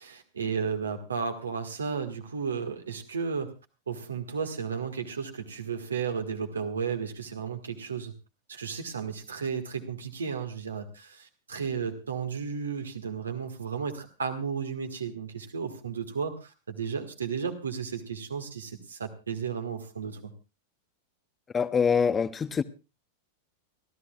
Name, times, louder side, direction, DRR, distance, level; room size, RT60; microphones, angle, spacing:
voice 1, 0.0-3.5 3.9-8.1 8.5-20.3, right 6 dB, 70° right, 1.7 m, -33 dB
voice 2, 21.5-22.6, left 6 dB, 20° left, 0.7 m, -24 dB
30.0 x 13.0 x 2.4 m
figure-of-eight pair, 90°, 0 cm